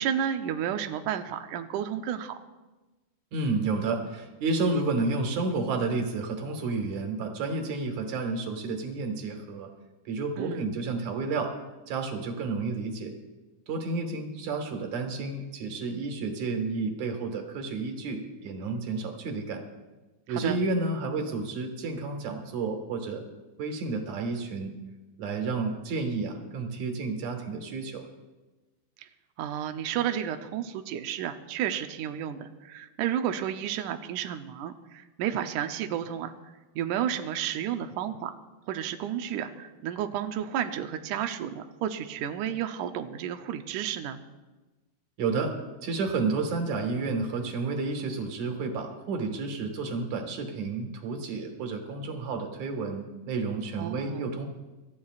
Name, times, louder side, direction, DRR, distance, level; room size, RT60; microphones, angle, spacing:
voice 1, 0.0-2.3 10.4-10.7 20.3-20.6 29.0-29.1 29.4-36.3 36.8-38.3 38.7-44.2 53.8-54.3, right 9 dB, 90° right, 7 dB, 1.8 m, -32 dB
voice 2, 3.3-9.7 10.1-11.5 11.9-13.1 13.7-19.6 20.3-23.2 23.6-24.7 25.2-28.1 45.2-45.5 45.8-54.4, right 3 dB, 55° right, 4 dB, 2.6 m, -31 dB
25.5 x 13.5 x 2.4 m, 1.2 s
omnidirectional pair, 4.4 m